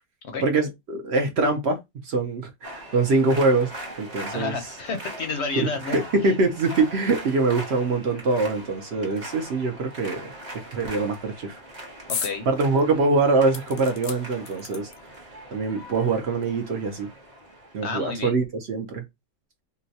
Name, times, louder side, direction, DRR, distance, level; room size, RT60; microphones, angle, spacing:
voice 1, 0.4-3.7 4.0-4.5 5.6-11.6 12.5-14.9 15.5-17.1 17.7-19.0, right 3 dB, 60° right, 0.8 m, -24 dB
sound 1, 2.6-18.1, right 1 dB, 35° right, 1.0 m, -41 dB
voice 2, 4.3-6.3 12.1-12.5 17.8-18.4, left 4 dB, 60° left, 0.8 m, -31 dB
sound 2, 12.1-12.4 12.8-12.9 13.5-15.2 16.1-16.2 16.4-16.5, left 6 dB, 80° left, 0.3 m, -34 dB
3.8 x 2.2 x 2.7 m
omnidirectional pair, 1.5 m